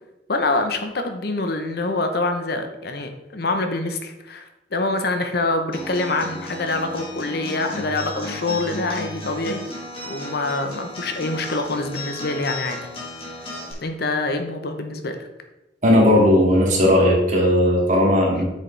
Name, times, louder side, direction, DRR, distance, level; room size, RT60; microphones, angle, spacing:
voice 1, 0.3-9.6 10.1-12.8 13.8-15.3, left 2 dB, 60° left, 6 dB, 0.9 m, -25 dB
Acoustic guitar, 5.7-13.7, left 2 dB, 30° left, 2.3 m, -34 dB
voice 2, 15.8-18.4, left 1 dB, 45° right, -2 dB, 2.2 m, -16 dB
8.5 x 6.5 x 3.3 m, 0.96 s
head